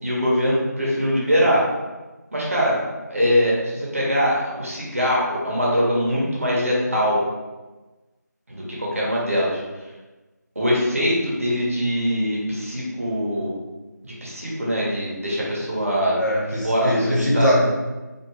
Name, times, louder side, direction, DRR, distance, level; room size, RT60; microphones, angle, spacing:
voice 1, 0.0-1.6 2.3-2.8 3.1-7.2 8.5-9.6 10.5-13.5 14.0-16.2 16.6-17.5, equal, 50° right, -5 dB, 0.9 m, -22 dB
voice 2, 16.2-17.6, equal, 85° left, -5 dB, 1.2 m, -21 dB
2.5 x 2.3 x 3.0 m, 1.2 s
figure-of-eight pair, 170°, 10 cm